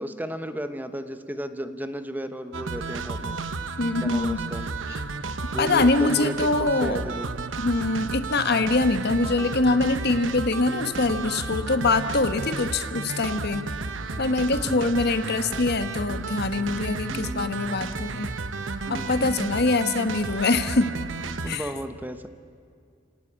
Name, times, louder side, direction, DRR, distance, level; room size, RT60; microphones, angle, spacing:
voice 1, 0.0-3.4 4.0-4.6 5.5-7.3 14.6-15.0 17.1-17.5 18.9-19.3 21.4-22.3, equal, 10° right, 9 dB, 0.9 m, -34 dB
sound 1, 2.5-21.6, right 3 dB, 75° right, 1.1 m, -32 dB
voice 2, 3.8-4.4 4.9-5.0 5.6-7.0 7.6-13.7 14.2-18.3 18.9-20.9 21.5-21.7, left 3 dB, 55° left, 10 dB, 1.2 m, -24 dB
28.5 x 18.0 x 8.7 m, 2.3 s
head